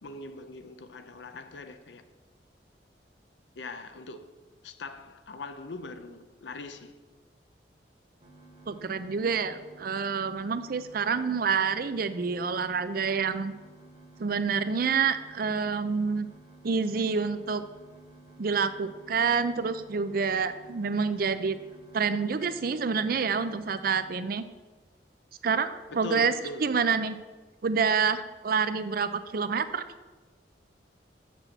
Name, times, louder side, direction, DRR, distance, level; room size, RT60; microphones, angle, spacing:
voice 1, 0.0-2.0 3.6-4.3 4.6-6.9 25.9-26.7, left 3 dB, 80° left, 0.6 m, -41 dB
sound 1, 8.2-24.2, right 2 dB, 35° right, 1.4 m, -53 dB
voice 2, 8.7-13.5 14.2-16.3 16.6-17.6 18.4-21.6 21.9-24.4 25.4-26.3 26.6-27.2 27.6-29.8, right 5 dB, 55° right, 0.5 m, -27 dB
7.0 x 6.1 x 7.0 m
head